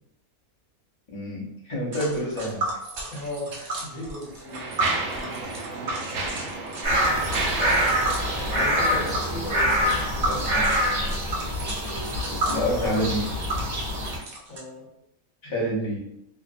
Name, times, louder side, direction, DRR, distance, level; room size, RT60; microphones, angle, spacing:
voice 1, 1.1-2.7 7.6-7.9 8.4-8.6 8.9-9.0 10.2-10.7 12.3-13.3 15.4-16.0, equal, 35° left, -5 dB, 0.5 m, -29 dB
Tick, 1.9-14.6, right 1 dB, 60° right, 0.6 m, -33 dB
voice 2, 3.1-4.8 5.2-6.1 8.4-10.5 14.5-14.9 15.4-15.7, left 1 dB, 70° left, -3 dB, 1.1 m, -37 dB
Mechanisms, 3.1-3.3 4.0-9.8, right 3 dB, 90° right, 1.1 m, -32 dB
sound 1, 6.8-14.2, equal, 30° right, 1.0 m, -25 dB
2.8 x 2.0 x 2.5 m, 0.82 s
omnidirectional pair, 1.5 m